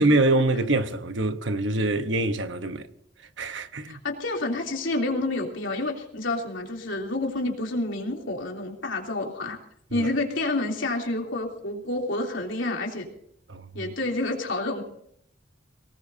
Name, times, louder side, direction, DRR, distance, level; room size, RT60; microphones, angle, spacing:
voice 1, 0.0-2.9 3.4-4.0 9.9-10.1 13.5-13.9, right 2 dB, 70° right, 1.1 m, -25 dB
voice 2, 3.9-9.6 9.9-13.1 13.7-14.8, left 2 dB, 80° left, 3.2 m, -29 dB
23.0 x 18.5 x 2.8 m
head